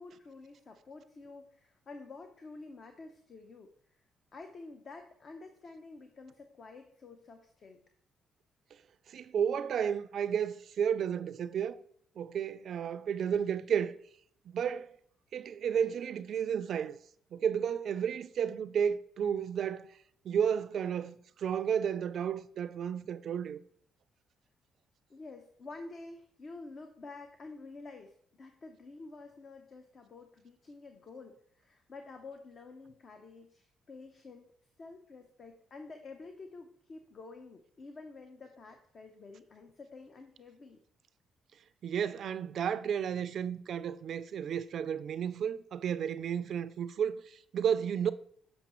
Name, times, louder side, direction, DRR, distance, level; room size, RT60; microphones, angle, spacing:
voice 1, 0.0-4.0 4.3-7.8 25.1-34.5 34.8-40.8, left 3 dB, 45° left, 0.7 m, -49 dB
voice 2, 9.1-11.8 12.2-14.0 14.5-14.9 15.3-17.0 17.3-19.9 20.2-23.6 41.8-48.1, right 8 dB, 65° right, 0.3 m, -32 dB
7.0 x 5.4 x 3.0 m
cardioid pair, 90°, 0 cm